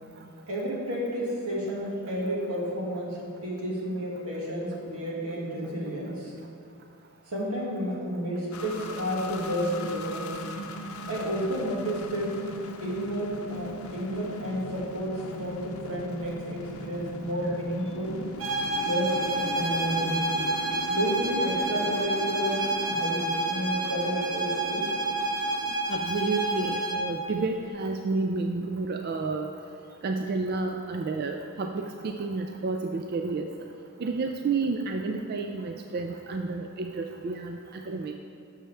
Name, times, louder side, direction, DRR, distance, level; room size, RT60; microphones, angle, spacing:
voice 1, 0.5-6.3 7.3-10.4 11.1-12.4 12.8-18.2 18.8-20.2 20.9-23.2 23.5-24.9, equal, 85° right, -4 dB, 2.0 m, -31 dB
sound 1, 8.5-27.0, left 2 dB, 75° left, 0.6 m, -40 dB
sound 2, 18.4-27.1, right 2 dB, 70° right, 1.3 m, -29 dB
voice 2, 25.9-29.5 30.0-33.5 34.0-38.1, right 3 dB, 45° right, 4 dB, 0.3 m, -30 dB
11.0 x 6.5 x 3.4 m, 2.4 s
head